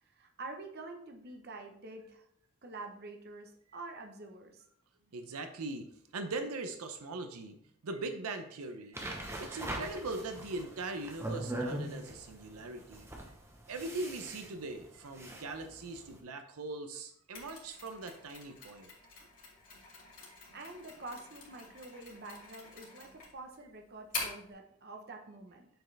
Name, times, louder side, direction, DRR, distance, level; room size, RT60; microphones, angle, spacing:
voice 1, 0.1-2.3 2.6-4.6 20.5-25.7, right 2 dB, 45° right, 3 dB, 0.9 m, -47 dB
voice 2, 5.1-5.9 6.1-7.6 7.8-9.0 9.4-13.1 13.7-18.9 20.3-20.4, right 2 dB, 85° right, 6 dB, 0.6 m, -40 dB
sound 1, 8.9-16.2, right 1 dB, 10° right, 0.8 m, -41 dB
Mechanisms, 17.3-24.5, left 4 dB, 40° left, 2.5 m, -46 dB
7.8 x 4.5 x 3.3 m, 0.69 s
head